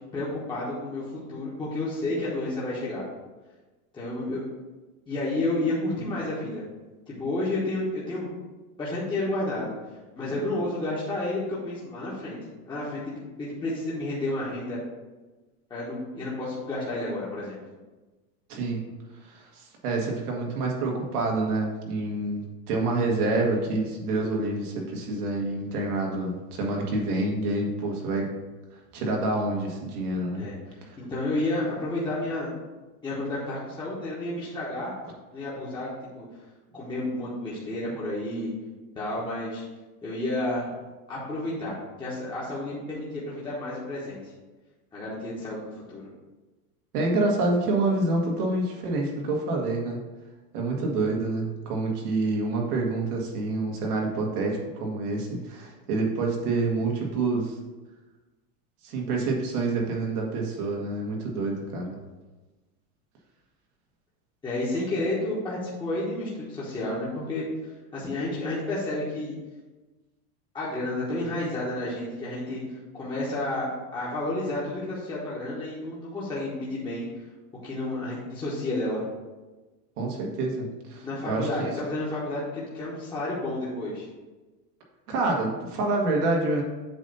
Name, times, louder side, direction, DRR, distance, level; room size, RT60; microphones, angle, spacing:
voice 1, 0.1-3.0 3.9-4.5 5.1-6.6 7.1-8.4 8.8-9.8 10.2-12.4 12.7-14.8 15.7-17.6 30.4-30.5 31.0-32.5 33.0-34.9 35.3-35.9 36.1-36.2 36.7-38.5 38.9-39.6 40.0-40.7 41.1-44.2 44.9-46.0 64.4-67.5 67.9-69.3 70.5-72.6 72.9-77.0 77.6-79.0 81.0-84.1, left 2 dB, 10° left, -8 dB, 1.1 m, -31 dB
voice 2, 19.2-28.3 28.9-30.4 30.8-31.0 46.9-50.0 50.5-57.6 58.8-62.0 80.0-81.7 85.1-86.6, right 2 dB, 90° right, 0 dB, 1.9 m, -27 dB
7.8 x 2.8 x 5.5 m, 1.2 s
supercardioid pair, 155°, 44 cm